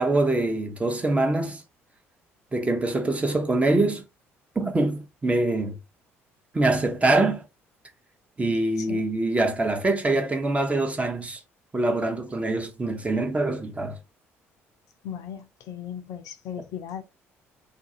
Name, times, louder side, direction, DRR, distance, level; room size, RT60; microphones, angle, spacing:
voice 1, 0.0-1.6 2.5-4.0 4.6-5.8 6.5-7.4 8.4-11.4 11.7-14.0, right 2 dB, 20° right, 0.6 m, -24 dB
voice 2, 15.0-17.0, left 9 dB, 55° left, 0.4 m, -37 dB
2.5 x 2.3 x 2.6 m
figure-of-eight pair, 50°, 7 cm